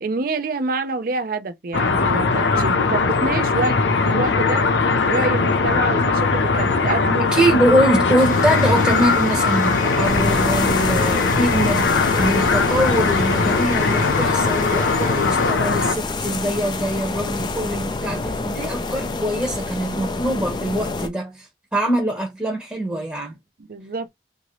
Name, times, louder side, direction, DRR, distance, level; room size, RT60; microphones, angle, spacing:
voice 1, 0.0-4.6 5.0-7.3 23.7-24.1, right 3 dB, 55° right, 0.5 m, -26 dB
sound 1, 1.7-16.0, left 4 dB, 90° left, 0.6 m, -20 dB
sound 2, 7.3-16.1, left 3 dB, 45° left, 0.9 m, -31 dB
voice 2, 7.3-21.5 21.7-23.4, right 1 dB, 10° right, 0.8 m, -23 dB
sound 3, 10.0-21.1, left 3 dB, 25° left, 0.4 m, -28 dB
2.9 x 2.6 x 3.0 m
head